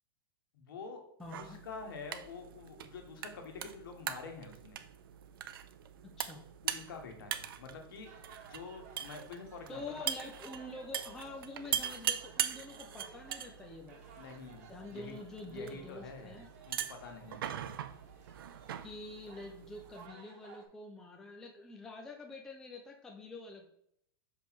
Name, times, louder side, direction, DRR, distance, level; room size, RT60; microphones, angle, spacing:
voice 1, 0.5-1.0 1.3-4.8 6.6-8.1 8.5-10.0 14.2-15.2 15.4-16.4 16.7-17.6, left 4 dB, 65° left, 3 dB, 1.6 m, -47 dB
voice 2, 1.2-1.6 6.2-6.4 9.7-14.0 14.7-16.5 18.8-23.6, left 2 dB, 5° left, 1 dB, 0.3 m, -46 dB
sound 1, 1.2-20.1, right 10 dB, 65° right, 0.6 m, -42 dB
sound 2, 8.0-20.7, right 6 dB, 40° right, 1.1 m, -57 dB
6.0 x 5.2 x 3.1 m, 0.74 s
supercardioid pair, 180°, 12 cm